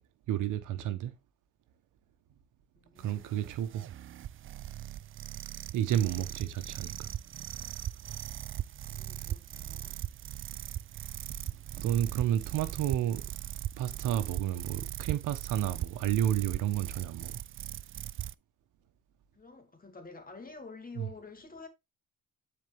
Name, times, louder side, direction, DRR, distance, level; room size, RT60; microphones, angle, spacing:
voice 1, 0.3-1.1 3.0-3.9 5.7-7.1 11.8-13.2 13.8-17.4 21.0-21.1, right 11 dB, 85° right, 1.2 m, -31 dB
voice 2, 2.8-3.4 8.8-10.1 19.3-21.7, left 4 dB, 30° left, 2.4 m, -49 dB
sound 1, 3.0-18.3, right 12 dB, 45° right, 0.4 m, -39 dB
10.5 x 4.5 x 3.5 m
cardioid pair, 90°, 30 cm